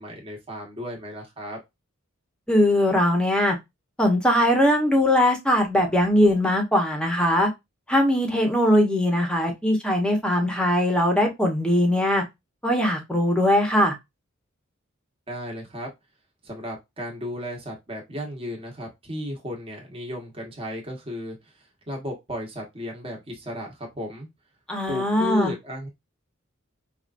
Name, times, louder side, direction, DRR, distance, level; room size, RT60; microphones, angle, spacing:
voice 1, 0.0-1.6 15.3-15.9 16.4-21.5 21.9-24.3 24.9-25.9, equal, 30° right, 1.2 m, -34 dB
voice 2, 2.5-3.6 4.0-7.5 7.9-12.2 12.6-13.9 24.7-25.5, left 1 dB, 5° left, 0.9 m, -20 dB
4.8 x 2.4 x 2.5 m
head